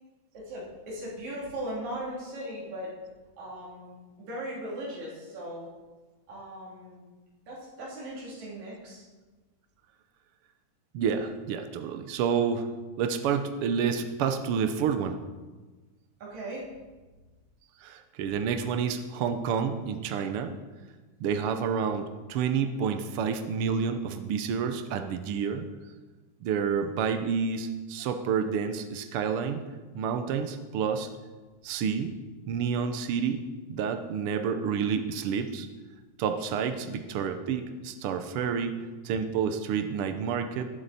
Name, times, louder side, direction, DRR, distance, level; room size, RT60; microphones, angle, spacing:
voice 1, 0.3-2.9 3.4-5.7 6.3-7.1 7.5-9.0 16.2-16.7 21.2-21.4 36.3-36.6, right 1 dB, 65° right, -6 dB, 4.3 m, -38 dB
voice 2, 10.9-12.7 13.0-15.2 17.8-20.5 21.2-25.7 26.4-29.6 29.9-31.1 31.6-32.1 32.5-33.4 33.7-35.7 36.2-40.7, right 6 dB, 80° right, 7 dB, 1.2 m, -29 dB
19.5 x 7.7 x 4.1 m, 1.3 s
omnidirectional pair, 3.5 m